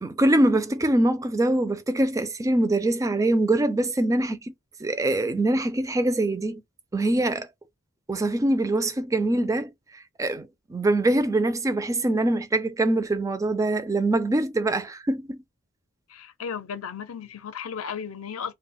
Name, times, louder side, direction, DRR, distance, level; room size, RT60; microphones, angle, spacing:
voice 1, 0.0-4.5 4.8-6.6 6.9-7.5 8.1-15.4, right 1 dB, 15° right, 0.3 m, -24 dB
voice 2, 16.1-18.5, left 7 dB, 70° left, 0.5 m, -35 dB
2.2 x 2.1 x 3.7 m
head